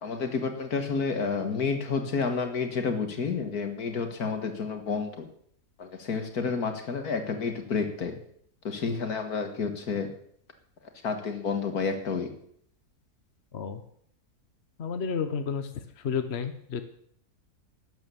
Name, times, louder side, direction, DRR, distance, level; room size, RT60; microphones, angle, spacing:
voice 1, 0.0-5.2 5.8-8.1 8.6-10.1 11.0-12.3, left 5 dB, 70° left, 6 dB, 2.1 m, -30 dB
voice 2, 14.8-15.7 16.0-16.8, left 6 dB, 45° left, 8 dB, 1.2 m, -31 dB
12.5 x 9.2 x 7.0 m, 0.65 s
omnidirectional pair, 1.7 m